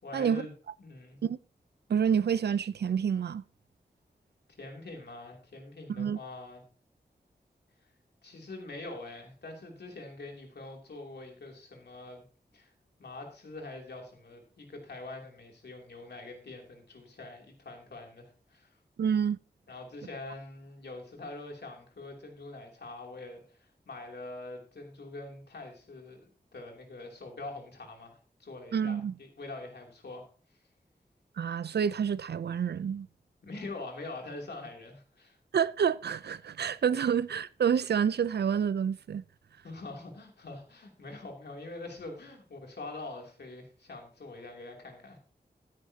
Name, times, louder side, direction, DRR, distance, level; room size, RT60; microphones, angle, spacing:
voice 1, 0.0-0.5 0.8-1.2 4.5-6.6 8.2-12.2 12.5-12.7 13.0-18.8 19.7-30.3 33.4-35.4 39.6-45.2, left 2 dB, 90° left, 2.9 m, -44 dB
voice 2, 1.9-3.4 5.9-6.2 19.0-19.4 28.7-29.1 31.4-33.1 35.5-39.2, right 7 dB, 85° right, 0.5 m, -28 dB
14.0 x 9.6 x 2.8 m
wide cardioid pair, 95°, 17 cm